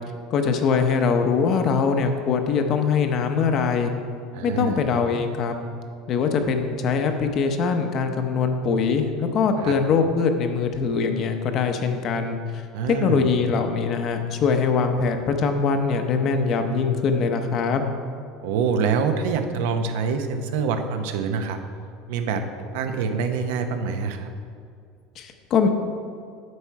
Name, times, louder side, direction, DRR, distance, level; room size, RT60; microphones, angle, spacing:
voice 1, 0.3-3.9 4.4-5.5 6.1-12.4 12.9-17.9 25.2-25.7, left 5 dB, 35° left, 6 dB, 0.7 m, -22 dB
voice 2, 4.3-4.8 9.6-9.8 12.7-13.2 18.4-21.6 22.1-24.3, right 5 dB, 75° right, 7 dB, 0.8 m, -25 dB
9.6 x 7.4 x 4.6 m, 2.3 s
cardioid pair, 175°, 0 cm